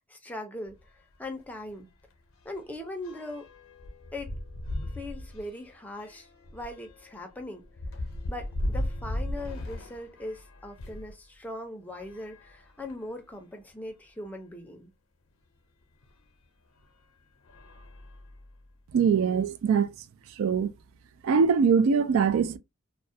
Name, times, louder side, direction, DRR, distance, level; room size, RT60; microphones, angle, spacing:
voice 1, 0.1-0.8 1.2-1.9 2.4-3.5 4.1-4.3 5.0-6.3 6.5-7.6 8.3-14.9, left 1 dB, 10° left, 0.5 m, -40 dB
sound 1, 0.7-0.9 1.2-1.3 1.7-11.1 11.9-13.2 13.9-14.0 14.2-14.3 16.0-16.2 16.8-17.0 17.4-18.7, left 1 dB, 85° left, 0.6 m, -38 dB
voice 2, 18.9-19.9 20.4-20.7 21.2-22.6, right 6 dB, 75° right, 0.3 m, -22 dB
2.3 x 2.1 x 2.6 m
head